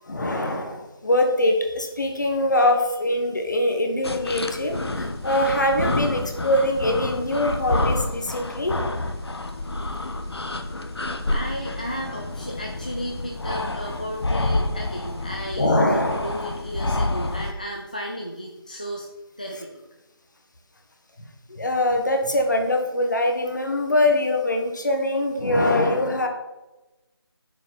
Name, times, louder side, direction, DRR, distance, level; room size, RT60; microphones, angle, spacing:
voice 1, 0.1-8.7 15.6-16.3 21.2-26.3, left 1 dB, 45° left, 4 dB, 1.5 m, -23 dB
sound 1, 4.0-17.5, left 2 dB, 75° left, 1.1 m, -28 dB
voice 2, 11.0-19.1 19.4-19.8, equal, 20° left, 0 dB, 0.4 m, -34 dB
8.7 x 7.1 x 4.5 m, 1.1 s
figure-of-eight pair, 175°, 13 cm